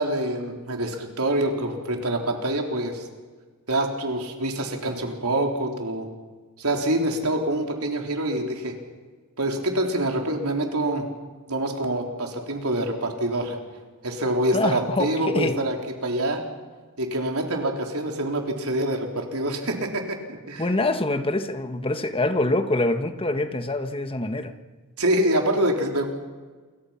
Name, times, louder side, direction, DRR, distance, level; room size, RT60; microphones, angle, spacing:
voice 1, 0.0-3.1 3.7-6.1 6.6-8.7 9.4-11.1 11.5-13.6 14.0-15.8 16.0-16.4 17.0-20.6 25.0-26.1, right 1 dB, 75° right, 2 dB, 3.9 m, -26 dB
voice 2, 14.5-15.6 20.6-24.5, left 2 dB, 25° left, 8 dB, 1.4 m, -25 dB
29.0 x 23.5 x 5.9 m, 1.4 s
head